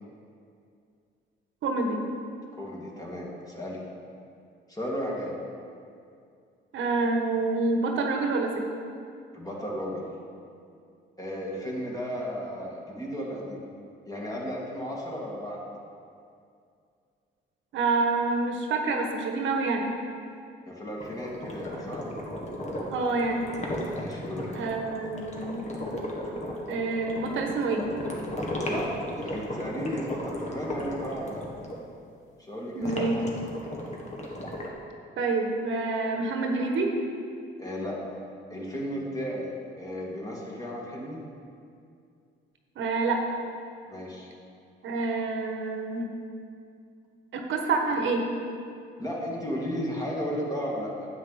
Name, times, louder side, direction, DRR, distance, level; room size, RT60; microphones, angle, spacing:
voice 1, 1.6-2.0 6.7-8.6 17.7-19.8 22.9-23.4 24.5-25.6 26.7-27.8 32.7-33.2 35.2-36.9 42.8-43.2 44.8-46.1 47.3-48.3, right 3 dB, 75° right, 2 dB, 1.2 m, -27 dB
voice 2, 2.5-3.8 4.7-5.4 9.3-10.1 11.2-13.6 14.1-15.6 20.7-22.0 23.9-24.5 28.6-28.9 29.1-31.4 32.4-33.5 37.6-38.0 38.5-41.2 43.9-44.3 49.0-51.1, equal, 20° left, -4 dB, 2.2 m, -34 dB
sound 1, 21.0-31.8 32.8-34.7, left 1 dB, 35° left, 1.6 m, -35 dB
9.2 x 8.2 x 4.1 m, 2.4 s
cardioid pair, 90°, 20 cm